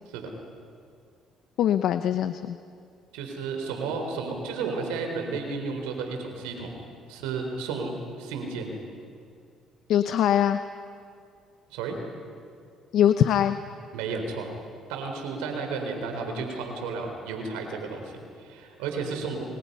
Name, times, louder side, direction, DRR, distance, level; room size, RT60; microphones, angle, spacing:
voice 1, 1.6-2.6 9.9-10.6 12.9-13.6, left 10 dB, 70° left, 10 dB, 0.8 m, -22 dB
voice 2, 3.1-6.7 7.1-8.8 11.7-12.0 13.9-14.5 14.9-19.4, right 4 dB, 90° right, 4 dB, 4.1 m, -32 dB
30.0 x 27.0 x 5.6 m, 2.3 s
supercardioid pair, 70°, 0 cm